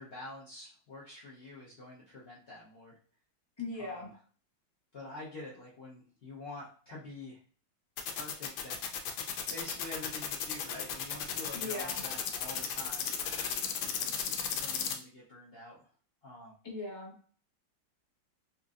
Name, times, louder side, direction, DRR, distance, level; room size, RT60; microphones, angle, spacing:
voice 1, 0.0-3.0 3.8-4.1 4.9-7.4 8.1-13.1 13.8-15.9 16.2-16.5, left 2 dB, 60° left, -6 dB, 0.6 m, -47 dB
voice 2, 3.6-4.1 11.5-12.0 16.6-17.1, left 2 dB, 20° left, -3 dB, 0.7 m, -39 dB
sound 1, 8.0-15.0, left 8 dB, 85° left, 1.3 m, -34 dB
4.2 x 2.6 x 2.4 m, 0.43 s
omnidirectional pair, 2.1 m